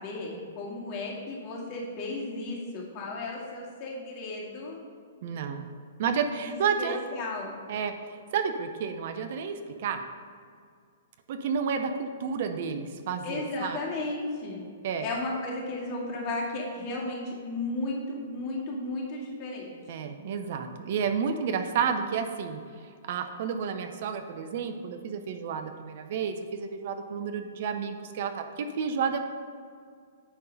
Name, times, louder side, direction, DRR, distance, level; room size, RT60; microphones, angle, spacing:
voice 1, 0.0-4.8 6.4-7.6 13.2-14.7 15.0-19.7, left 2 dB, 40° left, -3 dB, 2.1 m, -34 dB
voice 2, 5.2-5.7 6.0-7.0 7.7-7.9 8.3-10.0 11.3-13.8 14.8-15.1 19.9-22.6 23.0-29.2, right 6 dB, 55° right, 7 dB, 0.6 m, -31 dB
9.6 x 3.8 x 5.3 m, 2.1 s
hypercardioid pair, 120°, 0 cm